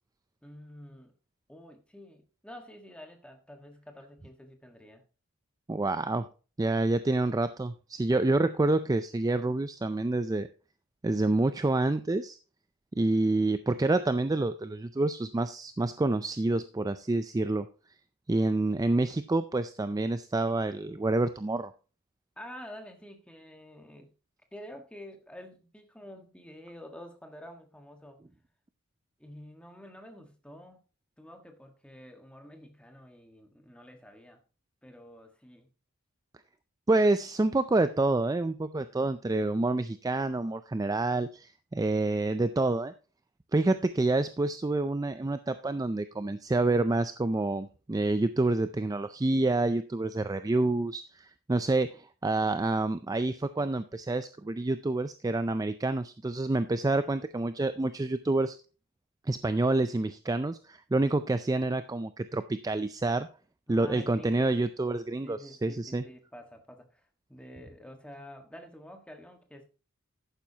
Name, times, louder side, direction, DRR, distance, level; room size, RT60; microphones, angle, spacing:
voice 1, 0.4-1.1 1.5-5.0 22.4-24.1 24.5-28.2 29.2-30.8 31.2-34.4 34.8-35.7 63.7-64.5 65.2-69.6, equal, 5° left, 5 dB, 1.5 m, -48 dB
voice 2, 5.7-6.2 6.6-10.5 11.0-12.4 13.0-17.7 18.3-21.7 36.9-42.9 43.5-58.6 59.3-63.3 63.7-66.0, right 2 dB, 15° right, 12 dB, 0.3 m, -28 dB
11.5 x 9.2 x 2.8 m, 0.34 s
head